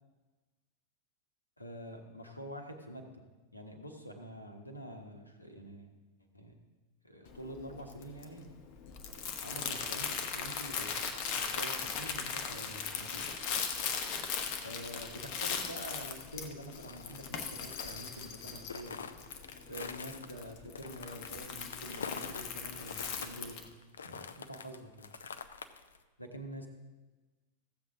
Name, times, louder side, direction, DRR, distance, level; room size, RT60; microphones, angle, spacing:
voice 1, 1.6-3.1 3.5-5.9 6.3-6.6 7.0-8.5 9.4-11.0 11.4-13.3 14.6-19.0 19.7-23.7 24.0-25.1 26.2-26.7, right 1 dB, 85° left, 4 dB, 1.2 m, -46 dB
Crumpling crinkling, 7.3-23.7, left 6 dB, 45° left, 1.1 m, -39 dB
sound 1, 13.6-22.5 22.8-26.0, left 5 dB, 70° left, 0.5 m, -46 dB
15.0 x 7.5 x 3.7 m, 1.2 s
figure-of-eight pair, 90°, 0 cm